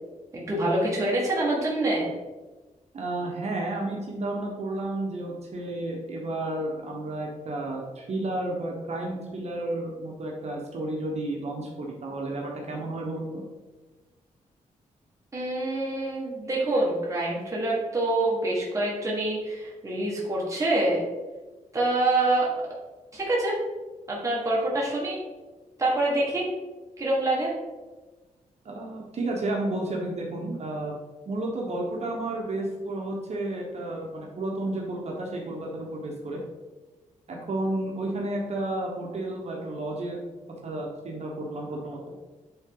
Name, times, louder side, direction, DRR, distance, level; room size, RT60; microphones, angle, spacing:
voice 1, 0.3-2.1 15.3-21.0 21.7-22.5 23.1-23.6 24.1-25.2 25.8-26.5 27.0-27.5, right 2 dB, 25° right, -5 dB, 1.7 m, -26 dB
voice 2, 2.9-13.4 28.6-30.9 31.3-36.4 37.3-40.2 40.6-42.0, right 2 dB, 55° right, -1 dB, 1.1 m, -32 dB
8.7 x 3.8 x 3.8 m, 1.2 s
wide cardioid pair, 110°, 14 cm